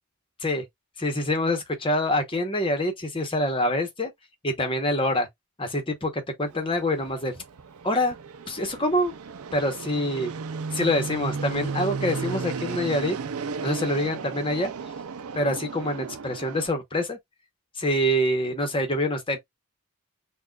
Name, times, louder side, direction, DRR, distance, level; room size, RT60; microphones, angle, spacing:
voice 1, 1.0-4.1 4.4-5.3 5.6-7.4 7.8-8.2 8.5-9.1 9.5-10.3 10.7-13.2 13.6-14.7 15.3-17.2 17.8-19.4, left 1 dB, 25° left, 1.0 m, -25 dB
Fixed-wing aircraft airplane, 6.5-16.7, right 5 dB, 75° right, 0.5 m, -34 dB
6.0 x 2.4 x 2.3 m
head